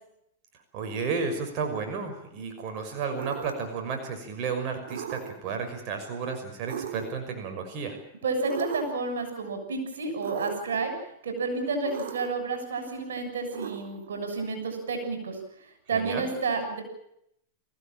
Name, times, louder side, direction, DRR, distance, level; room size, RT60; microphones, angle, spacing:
voice 1, 0.7-8.0 15.9-16.3, right 5 dB, 45° right, 4 dB, 6.0 m, -32 dB
sound 1, 3.1-3.7 4.9-5.5 6.7-7.3 8.4-9.1 10.2-10.8 11.8-12.5 13.5-14.2, right 9 dB, 65° right, 3.2 m, -37 dB
voice 2, 8.2-10.9 11.2-15.4 15.9-16.8, right 4 dB, 85° right, 6 dB, 7.1 m, -30 dB
25.0 x 16.0 x 9.0 m, 0.76 s
hypercardioid pair, 115°, 0 cm